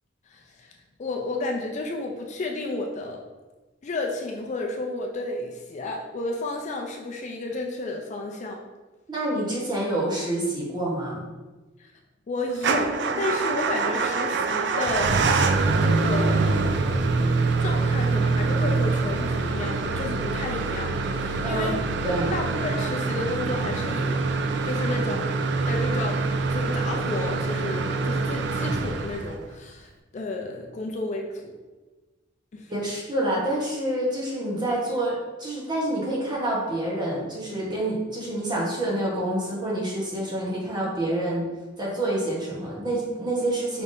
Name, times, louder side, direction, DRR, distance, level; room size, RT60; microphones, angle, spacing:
voice 1, 0.3-0.7 1.0-3.2 3.8-8.6 11.8-11.9 12.3-15.1 15.8-16.4 17.6-20.9 21.2-21.8 22.3-24.2 24.6-25.3 25.7-26.2 26.5-31.6 32.5-32.7, left 2 dB, 40° left, 1 dB, 0.4 m, -32 dB
voice 2, 9.1-11.2 21.4-21.7 22.0-22.3 32.7-41.4 41.8-43.8, right 1 dB, 25° right, -5 dB, 1.2 m, -27 dB
Motor vehicle (road) / Engine starting / Idling, 12.6-29.5, right 3 dB, 65° right, 0.4 m, -25 dB
5.1 x 3.5 x 2.7 m, 1.2 s
head